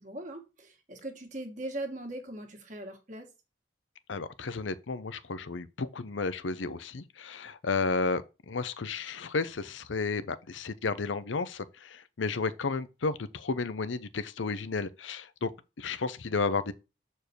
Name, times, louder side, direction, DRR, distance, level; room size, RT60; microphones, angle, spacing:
voice 1, 0.0-3.3, right 1 dB, 40° right, 1.7 m, -40 dB
voice 2, 4.1-15.5 15.8-16.7, left 4 dB, 90° left, 0.7 m, -32 dB
6.8 x 4.5 x 4.4 m
head